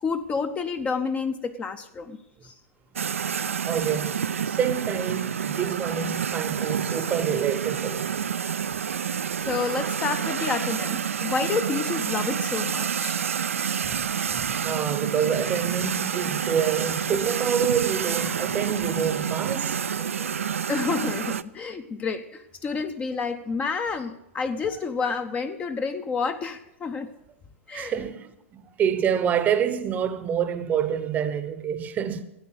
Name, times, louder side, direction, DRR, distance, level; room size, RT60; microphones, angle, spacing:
voice 1, 0.0-2.2 2.4-2.5 9.4-13.2 18.2-18.3 20.0-27.1 27.7-27.9, left 5 dB, 20° left, 0.7 m, -29 dB
sound 1, 3.0-21.4, right 7 dB, 70° right, 0.5 m, -28 dB
voice 2, 3.6-8.1 13.8-14.0 14.3-19.8 27.7-32.2, right 8 dB, 20° right, 0.9 m, -27 dB
13.5 x 9.3 x 6.5 m
figure-of-eight pair, 110°, 7 cm